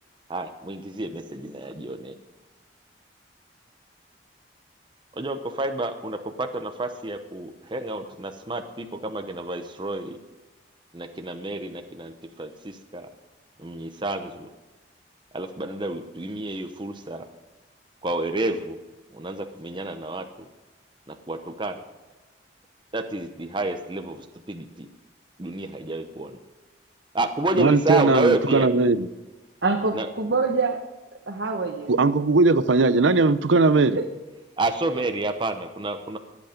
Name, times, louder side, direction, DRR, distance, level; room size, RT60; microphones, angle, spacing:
voice 1, 0.3-2.1 5.1-10.2 10.9-13.1 13.6-14.5 15.3-17.3 18.0-18.8 19.1-20.2 21.1-21.8 22.9-24.9 25.4-26.3 27.1-28.8 29.9-30.1 34.6-36.2, right 2 dB, 25° right, 6 dB, 0.8 m, -29 dB
voice 2, 27.6-29.1 31.9-34.0, right 3 dB, 90° right, 14 dB, 0.7 m, -19 dB
voice 3, 29.6-30.8 31.3-31.9 34.0-34.1, right 3 dB, 70° right, 1 dB, 1.2 m, -25 dB
20.5 x 8.4 x 5.2 m, 1.2 s
head